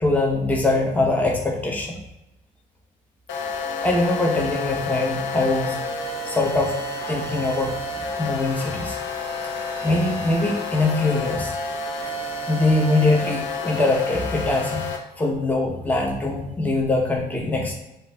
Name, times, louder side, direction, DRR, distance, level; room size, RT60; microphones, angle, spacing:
voice 1, 0.0-2.0 3.6-6.8 7.1-9.0 9.8-11.5 12.5-14.9 15.2-17.8, left 2 dB, 10° left, 0 dB, 0.8 m, -23 dB
sound 1, 3.3-15.0, left 3 dB, 85° left, 0.8 m, -30 dB
5.6 x 2.5 x 3.4 m, 0.91 s
cardioid pair, 85°, 19 cm